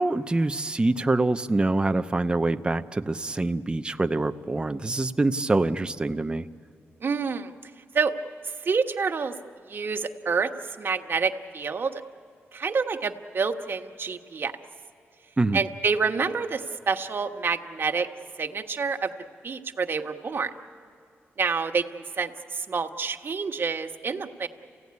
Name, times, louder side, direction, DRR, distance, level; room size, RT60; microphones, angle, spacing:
voice 1, 0.0-6.5 15.4-15.6, right 2 dB, 20° right, 8 dB, 0.7 m, -25 dB
voice 2, 7.0-8.1 8.4-9.4 9.7-12.0 12.5-14.5 15.5-18.1 18.4-19.1 19.4-20.5 21.4-24.5, right 5 dB, 50° right, 5 dB, 1.4 m, -28 dB
28.5 x 16.5 x 9.6 m, 2.3 s
cardioid pair, 75°, 5 cm